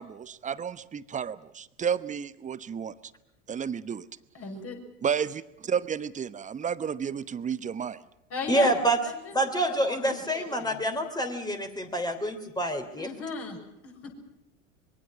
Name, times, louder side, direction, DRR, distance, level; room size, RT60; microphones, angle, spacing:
voice 1, 0.0-2.9 3.5-4.1 5.0-5.4 5.7-8.0, right 7 dB, 20° right, 16 dB, 1.0 m, -31 dB
voice 2, 4.3-4.8 8.3-9.3 9.6-10.7 13.0-13.6 13.8-14.1, left 4 dB, 35° left, 3 dB, 6.8 m, -36 dB
voice 3, 8.5-9.0 9.3-13.1, right 1 dB, 10° left, 6 dB, 3.3 m, -27 dB
25.0 x 23.0 x 6.0 m, 0.88 s
figure-of-eight pair, 80°, 41 cm